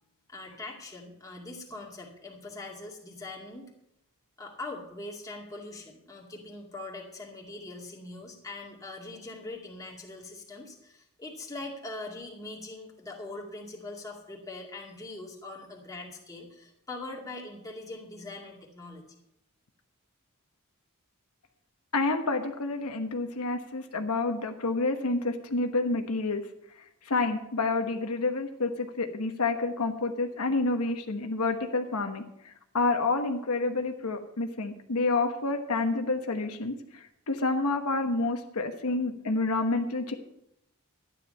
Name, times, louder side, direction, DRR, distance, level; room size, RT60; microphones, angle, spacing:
voice 1, 0.3-3.7 4.4-19.0, left 2 dB, 15° left, -1 dB, 2.2 m, -42 dB
voice 2, 21.9-26.4 27.0-40.1, left 3 dB, 85° left, 5 dB, 1.1 m, -29 dB
12.5 x 9.9 x 5.5 m, 0.80 s
head